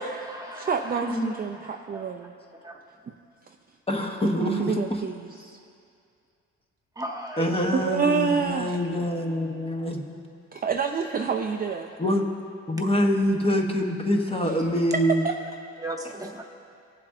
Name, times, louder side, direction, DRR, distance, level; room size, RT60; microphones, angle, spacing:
voice 1, 0.0-1.0 1.5-2.0 2.6-2.7 7.0-7.5 15.8-16.4, right 1 dB, 10° right, 1 dB, 1.2 m, -36 dB
voice 2, 0.5-2.3 4.4-5.5 7.7-8.8 10.5-11.9 14.4-14.5 14.9-15.4, right 6 dB, 30° right, 4 dB, 0.5 m, -27 dB
voice 3, 3.9-4.8 7.4-10.2 12.0-12.2 12.7-15.2, equal, 20° left, 1 dB, 1.0 m, -25 dB
19.0 x 7.4 x 2.6 m, 2.4 s
cardioid pair, 90°, 30 cm